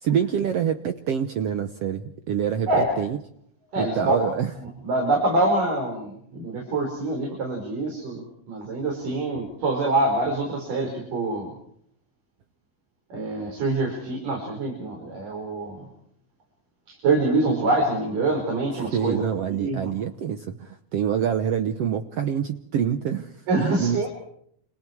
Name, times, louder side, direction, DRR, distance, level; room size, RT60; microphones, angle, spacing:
voice 1, 0.0-3.2 3.8-4.5 18.9-24.1, right 8 dB, 80° right, 8 dB, 1.3 m, -26 dB
voice 2, 3.7-4.2 4.6-11.5 13.1-15.9 16.9-19.9 23.5-24.1, right 2 dB, 60° right, 0 dB, 6.8 m, -25 dB
29.0 x 28.0 x 4.7 m, 0.67 s
omnidirectional pair, 4.3 m